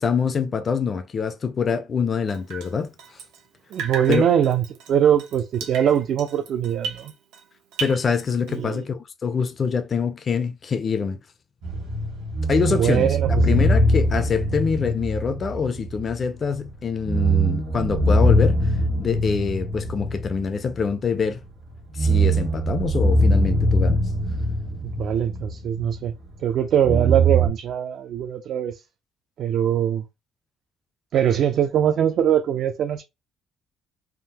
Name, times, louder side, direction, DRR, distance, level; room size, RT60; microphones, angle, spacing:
voice 1, 0.0-2.9 4.1-4.2 7.8-11.2 12.5-13.1 13.4-18.7 19.0-21.4 21.9-24.0, left 5 dB, 30° left, 0.4 m, -25 dB
Drip, 2.3-3.5 3.7-7.5 7.7-8.7, right 5 dB, 90° right, 0.7 m, -36 dB
voice 2, 3.7-7.1 8.5-8.9 12.7-13.5 24.8-26.1 26.4-28.8 29.4-30.0 31.1-33.0, right 9 dB, 55° right, 0.3 m, -22 dB
sound 1, 11.6-16.3 16.6-16.7 17.0-21.3 21.8-26.1 26.8-27.5, right 1 dB, 70° right, 1.4 m, -22 dB
3.5 x 2.0 x 2.8 m
cardioid pair, 150°, 0 cm